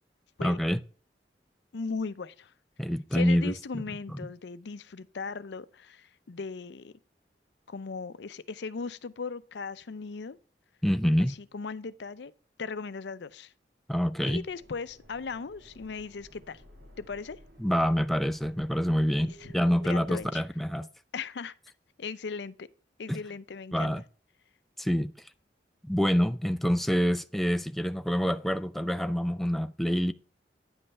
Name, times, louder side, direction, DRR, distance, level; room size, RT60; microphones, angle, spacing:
voice 1, 0.4-0.8 2.8-3.8 4.1-4.2 10.8-11.4 13.9-14.4 17.6-20.9 23.1-23.2 23.7-24.0 24.8-25.1 25.8-30.1, equal, ahead, 0.4 m, -26 dB
voice 2, 1.7-2.5 3.1-6.9 7.7-10.4 11.5-12.3 12.6-13.5 14.2-16.6 17.0-17.4 19.2-19.5 19.8-20.4 21.1-21.5 22.0-22.7 23.0-23.9, left 4 dB, 75° left, 0.5 m, -38 dB
sound 1, 14.3-20.4, right 1 dB, 80° right, 2.0 m, -54 dB
9.6 x 5.5 x 4.2 m
head